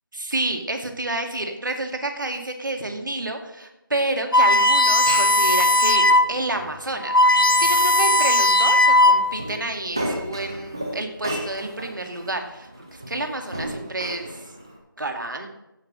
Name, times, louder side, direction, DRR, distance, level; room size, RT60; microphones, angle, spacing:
voice 1, 0.2-14.4 15.0-15.5, right 2 dB, 60° right, 4 dB, 2.3 m, -29 dB
sound 1, 4.3-6.3 6.7-6.8 7.0-9.5, left 1 dB, 70° left, 1.1 m, -17 dB
Glass, 4.8-14.8, right 1 dB, 10° right, 0.7 m, -35 dB
15.5 x 5.7 x 6.4 m, 0.91 s
figure-of-eight pair, 175°, 12 cm